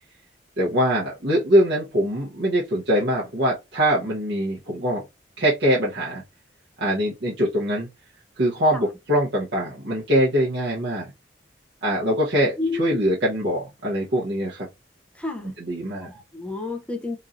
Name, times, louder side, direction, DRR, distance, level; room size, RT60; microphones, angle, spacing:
voice 1, 0.6-5.0 5.4-6.2 6.8-7.9 8.4-11.1 11.8-14.7 15.6-16.1, equal, 65° right, 0.9 m, -23 dB
voice 2, 12.6-13.0 15.1-15.5 16.0-17.2, left 3 dB, 5° left, 0.6 m, -30 dB
3.0 x 2.6 x 2.4 m
head